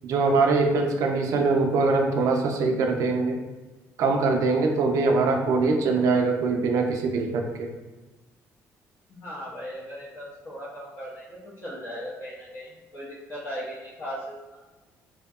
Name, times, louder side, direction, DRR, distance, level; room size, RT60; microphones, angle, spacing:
voice 1, 0.0-3.4 4.0-7.7, right 3 dB, 70° right, 3 dB, 0.4 m, -23 dB
voice 2, 9.1-14.6, equal, 45° left, -8 dB, 0.6 m, -38 dB
2.7 x 2.0 x 2.3 m, 1.2 s
cardioid pair, 130°, 6 cm